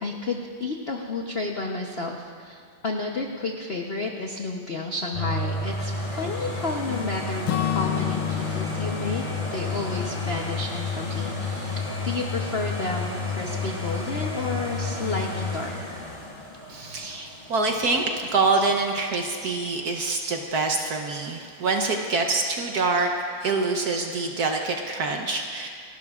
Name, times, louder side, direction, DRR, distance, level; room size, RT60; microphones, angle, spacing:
voice 1, 0.0-9.2 9.5-15.9, left 3 dB, 60° left, 1 dB, 0.6 m, -31 dB
sound 1, 5.1-18.8 19.3-19.4, left 3 dB, 25° left, 1.6 m, -31 dB
Acoustic guitar / Strum, 7.5-11.4, left 12 dB, 75° left, 1.3 m, -31 dB
voice 2, 16.7-23.1 23.4-25.7, right 3 dB, 60° right, 3 dB, 1.2 m, -25 dB
29.5 x 12.0 x 2.4 m, 2.2 s
omnidirectional pair, 2.3 m